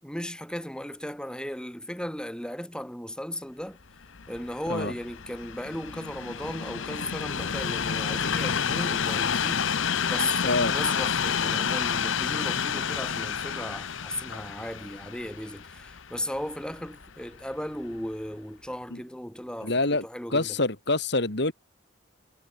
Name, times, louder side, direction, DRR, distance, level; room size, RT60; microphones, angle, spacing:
voice 1, 0.0-3.8 4.3-20.6, equal, 5° left, 6.2 m, -36 dB
Train, 4.0-17.2 17.9-18.1, left 7 dB, 75° left, 1.0 m, -30 dB
voice 2, 19.6-20.0 20.3-21.5, left 2 dB, 60° left, 2.7 m, -25 dB
head